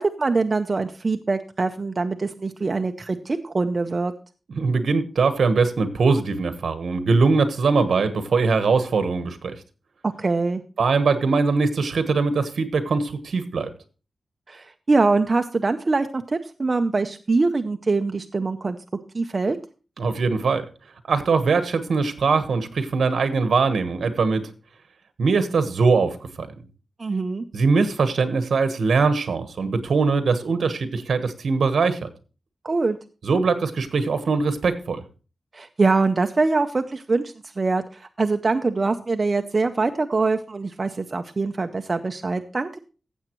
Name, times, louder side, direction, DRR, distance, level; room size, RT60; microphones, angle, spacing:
voice 1, 0.0-4.1 10.0-10.6 14.5-18.8 19.1-19.6 27.0-27.4 32.6-33.0 35.5-42.8, right 3 dB, 35° right, 7 dB, 0.6 m, -23 dB
voice 2, 4.5-9.5 10.8-13.7 20.0-20.7 21.1-24.4 25.2-26.5 27.5-32.1 33.2-35.0, right 4 dB, 75° right, 10 dB, 1.2 m, -21 dB
15.0 x 7.6 x 3.0 m, 0.34 s
wide cardioid pair, 115°, 0 cm